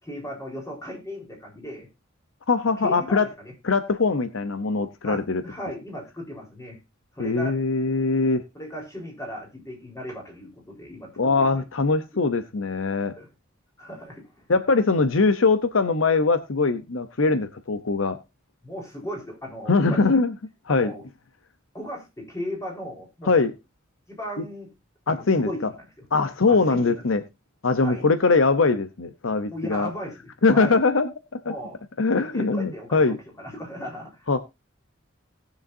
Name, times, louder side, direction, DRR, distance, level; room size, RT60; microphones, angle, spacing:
voice 1, 0.0-1.9 2.8-3.5 5.0-6.8 7.1-7.6 8.5-11.6 12.1-12.2 13.0-13.3 13.8-14.5 18.6-20.0 20.7-21.0 21.7-23.4 24.1-24.7 25.1-26.0 26.5-27.0 27.8-28.1 29.5-30.8 31.5-31.8 32.1-34.3, equal, 15° left, -1 dB, 4.2 m, -37 dB
voice 2, 2.5-3.3 3.6-5.4 7.2-8.4 11.2-13.1 14.5-18.2 19.7-20.3 20.7-20.9 23.2-23.5 25.1-25.7 26.1-27.2 27.6-29.9 30.4-31.1 31.4-31.5 32.0-33.2 34.3-34.4, left 3 dB, 70° left, 11 dB, 0.8 m, -22 dB
19.0 x 6.9 x 2.7 m, 0.24 s
head